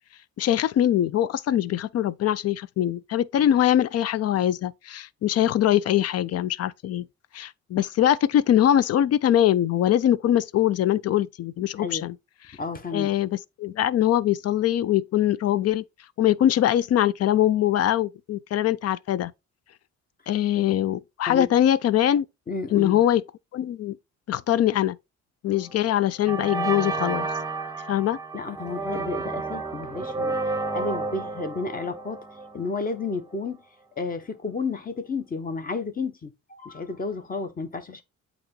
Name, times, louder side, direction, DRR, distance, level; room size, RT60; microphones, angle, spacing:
voice 1, 0.4-7.1 7.3-12.1 12.9-15.8 16.2-19.3 20.3-22.2 22.7-23.2 23.5-24.0 24.3-25.0 25.4-27.3 27.9-28.2, left 11 dB, 55° left, 0.5 m, -22 dB
voice 2, 12.6-13.1 21.3-21.5 22.5-23.0 28.3-30.4 30.7-32.2 32.5-33.6 34.0-38.0, left 4 dB, 30° left, 1.2 m, -31 dB
sound 1, 25.5-25.8 26.3-33.1, right 3 dB, 10° right, 0.8 m, -31 dB
8.5 x 3.0 x 3.8 m
cardioid pair, 90°, 30 cm